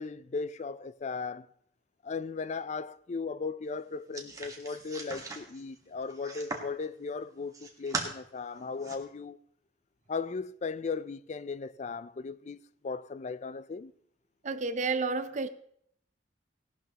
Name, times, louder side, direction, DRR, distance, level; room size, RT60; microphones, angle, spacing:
voice 1, 0.0-1.5 2.0-9.4 10.1-13.9, left 4 dB, 40° left, 0.4 m, -37 dB
sound 1, 4.1-6.8 7.3-8.1 8.5-9.0, right 3 dB, 20° right, 1.5 m, -39 dB
voice 2, 14.4-15.5, right 4 dB, 40° right, 0.7 m, -30 dB
17.0 x 12.0 x 3.0 m
head